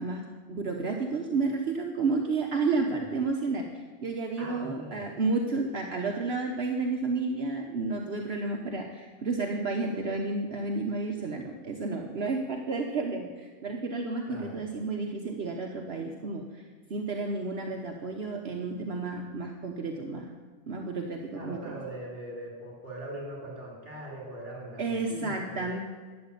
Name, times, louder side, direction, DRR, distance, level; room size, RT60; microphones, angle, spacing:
voice 1, 0.0-20.3 20.7-21.8 24.8-25.8, right 3 dB, 60° right, 2 dB, 1.2 m, -31 dB
voice 2, 2.7-3.0 4.4-5.0 14.3-14.6 21.3-25.7, right 1 dB, 40° right, -3 dB, 3.5 m, -41 dB
12.5 x 7.9 x 8.3 m, 1.5 s
omnidirectional pair, 1.2 m